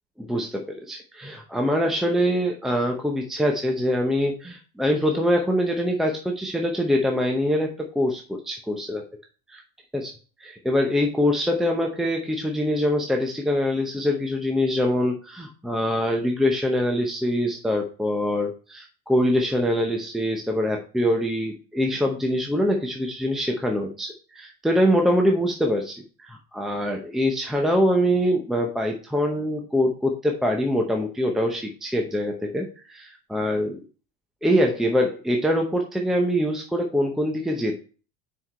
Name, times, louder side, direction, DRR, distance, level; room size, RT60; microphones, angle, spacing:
voice 1, 0.2-9.0 9.5-9.6 9.9-10.1 10.4-33.8 34.4-37.7, equal, ahead, 2 dB, 0.7 m, -24 dB
6.2 x 4.7 x 4.3 m, 0.36 s
supercardioid pair, 140°, 33 cm